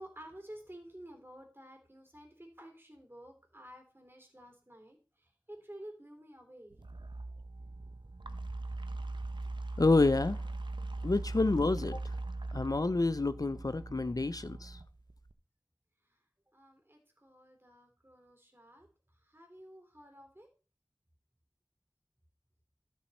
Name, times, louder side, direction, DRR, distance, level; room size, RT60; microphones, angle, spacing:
voice 1, 0.0-6.8 16.0-20.5, right 1 dB, 30° right, 3.4 m, -52 dB
sound 1, 6.7-15.3, right 2 dB, 85° right, 0.8 m, -40 dB
voice 2, 9.8-10.4 11.0-12.0 12.5-14.8, left 3 dB, 50° left, 0.4 m, -28 dB
12.5 x 7.4 x 4.2 m
wide cardioid pair, 40°, 8 cm